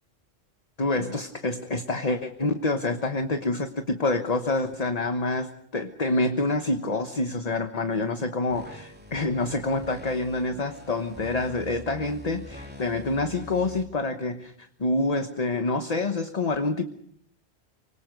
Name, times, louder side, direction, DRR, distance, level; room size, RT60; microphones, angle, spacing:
voice 1, 0.8-16.9, left 2 dB, 35° left, 7 dB, 1.2 m, -27 dB
sound 1, 8.5-13.8, equal, 10° right, 3.1 m, -44 dB
25.0 x 25.0 x 5.2 m, 0.66 s
omnidirectional pair, 1.1 m